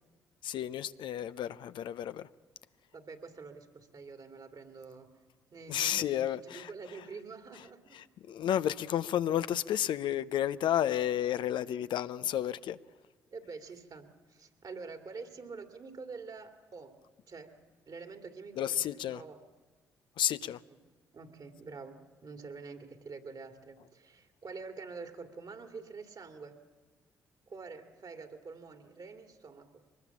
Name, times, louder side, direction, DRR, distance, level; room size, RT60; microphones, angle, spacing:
voice 1, 0.4-2.3 5.7-6.7 7.9-12.8 18.6-19.2 20.2-20.6, left 11 dB, 65° left, 0.6 m, -31 dB
voice 2, 2.9-5.1 5.5-8.0 13.3-17.0 17.3-17.6 17.9-19.4 20.4-20.8 21.1-26.5 27.5-29.8, right 4 dB, 50° right, 2.6 m, -47 dB
23.0 x 20.5 x 7.2 m
hypercardioid pair, 45°, 9 cm